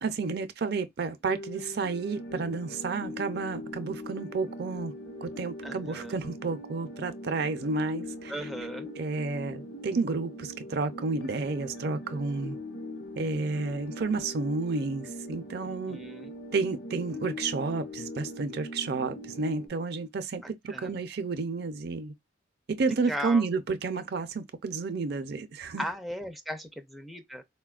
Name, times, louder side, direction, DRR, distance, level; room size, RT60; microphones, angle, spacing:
voice 1, 0.0-4.9 5.2-8.3 9.0-12.6 13.2-16.0 16.5-22.1 22.7-25.8, right 4 dB, 55° right, 0.5 m, -31 dB
sound 1, 1.2-19.7, left 1 dB, 75° left, 0.8 m, -41 dB
voice 2, 5.6-6.2 8.3-8.9 15.6-16.3 20.7-21.0 23.1-23.4 25.8-27.4, equal, ahead, 0.4 m, -37 dB
4.0 x 2.1 x 2.3 m
head